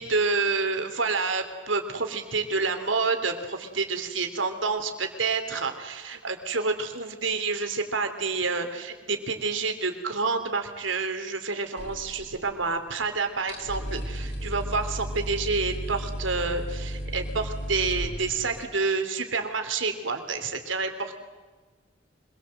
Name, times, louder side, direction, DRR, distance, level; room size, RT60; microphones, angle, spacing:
voice 1, 0.0-21.2, right 4 dB, 90° right, 6 dB, 3.2 m, -28 dB
sound 1, 11.8-12.8 13.0-13.1 13.4-18.6, equal, 55° left, 4.1 m, -34 dB
25.5 x 21.5 x 7.8 m, 1.3 s
head